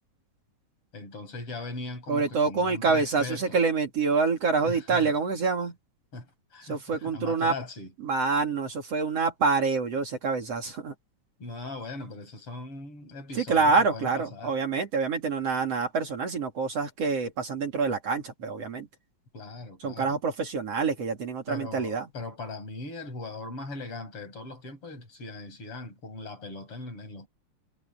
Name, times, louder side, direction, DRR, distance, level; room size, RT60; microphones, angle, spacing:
voice 1, 0.9-3.6 4.6-5.1 6.1-7.9 11.4-14.5 19.3-20.1 21.5-27.3, left 3 dB, 45° left, 8.1 m, -39 dB
voice 2, 2.1-5.8 6.6-7.5 8.0-10.9 13.3-18.9 19.8-22.1, right 4 dB, 55° right, 3.7 m, -26 dB
omnidirectional pair, 3.4 m